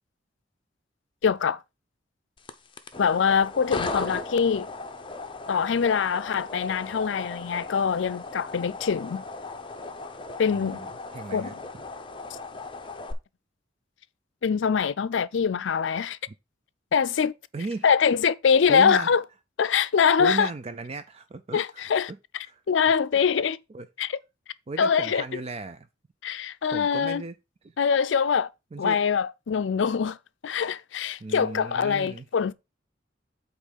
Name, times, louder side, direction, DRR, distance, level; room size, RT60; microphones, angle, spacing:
voice 1, 1.2-1.6 3.0-4.7 5.5-9.2 10.4-10.8 11.3-11.6 14.4-16.2 16.9-17.3 17.8-19.2 19.6-20.5 21.5-22.1 22.7-23.6 24.0-24.2 24.8-25.4 26.2-27.2 27.8-28.5 28.8-30.2 30.4-32.5, left 6 dB, 70° left, 0.4 m, -23 dB
sound 1, 2.4-13.1, left 3 dB, 25° left, 0.7 m, -37 dB
voice 2, 10.5-11.6 17.5-17.8 18.7-19.1 20.2-21.9 22.5-22.6 23.1-23.2 23.7-23.9 24.7-25.9 26.4-27.3 28.7-29.0 31.2-32.3, right 3 dB, 30° right, 0.4 m, -35 dB
8.3 x 3.1 x 5.2 m
head